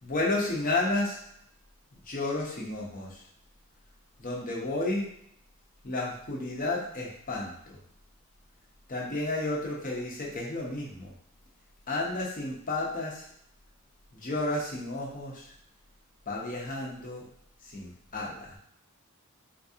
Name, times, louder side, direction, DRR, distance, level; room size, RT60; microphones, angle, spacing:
voice 1, 0.0-1.2 2.1-3.2 4.2-5.1 5.8-7.8 8.9-11.1 11.9-13.3 14.1-15.5 16.3-17.3 17.6-18.6, left 2 dB, 40° left, -3 dB, 0.9 m, -32 dB
3.9 x 2.4 x 2.7 m, 0.71 s
head